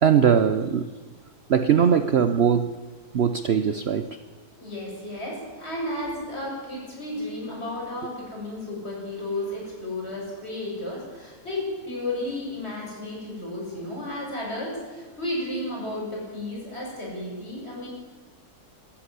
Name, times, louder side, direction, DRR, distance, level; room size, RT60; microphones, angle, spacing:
voice 1, 0.0-0.9 1.5-2.7 3.1-4.1, right 7 dB, 50° right, 11 dB, 0.8 m, -20 dB
voice 2, 4.4-17.9, left 1 dB, 40° left, -3 dB, 7.5 m, -33 dB
22.5 x 13.5 x 9.8 m, 1.4 s
omnidirectional pair, 1.7 m